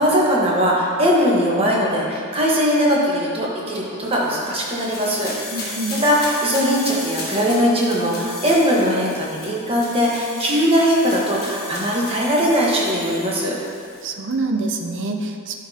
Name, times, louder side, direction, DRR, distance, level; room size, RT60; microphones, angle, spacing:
voice 1, 0.0-5.8 6.0-13.5, equal, 25° right, -4 dB, 1.2 m, -20 dB
sound 1, 4.0-14.0, left 2 dB, 45° left, 1.6 m, -35 dB
voice 2, 5.5-5.9 14.0-15.5, right 3 dB, 55° right, 4 dB, 0.6 m, -26 dB
11.0 x 5.1 x 2.8 m, 2.3 s
head